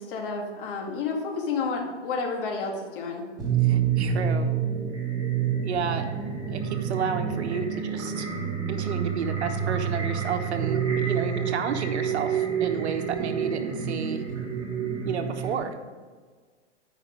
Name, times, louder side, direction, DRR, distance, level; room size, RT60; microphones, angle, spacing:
voice 1, 0.0-3.3, left 4 dB, 50° left, 1 dB, 1.9 m, -30 dB
sound 1, 3.4-15.6, right 7 dB, 10° right, 1.3 m, -28 dB
voice 2, 3.6-4.5 5.6-6.1 6.5-8.3 8.7-14.2 14.8-15.7, right 6 dB, 70° right, 7 dB, 1.1 m, -31 dB
9.1 x 5.6 x 5.0 m, 1.5 s
hypercardioid pair, 140°, 35 cm